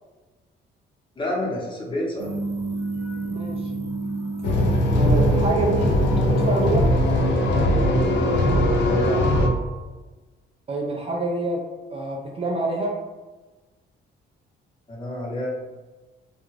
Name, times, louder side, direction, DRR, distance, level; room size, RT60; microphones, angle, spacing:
voice 1, 1.2-2.3 8.7-9.2 14.9-15.5, left 1 dB, 25° left, -4 dB, 1.0 m, -28 dB
sound 1, 2.2-7.5, right 3 dB, 90° right, 0.5 m, -32 dB
voice 2, 3.3-3.7 4.9-6.9 10.7-11.6 11.9-13.0, right 3 dB, 30° right, -1 dB, 0.4 m, -27 dB
sound 2, 4.4-9.5, left 1 dB, 65° left, 0.5 m, -20 dB
2.4 x 2.2 x 3.2 m, 1.2 s
cardioid pair, 90°, 20 cm